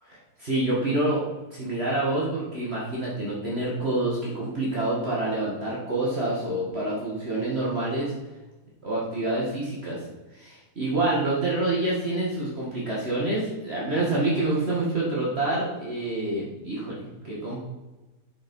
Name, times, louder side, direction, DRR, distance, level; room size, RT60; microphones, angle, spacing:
voice 1, 0.0-1.2 1.5-8.1 8.8-10.0 10.3-17.6, right 2 dB, 40° right, -6 dB, 2.2 m, -27 dB
8.6 x 7.4 x 5.4 m, 1.1 s
omnidirectional pair, 1.6 m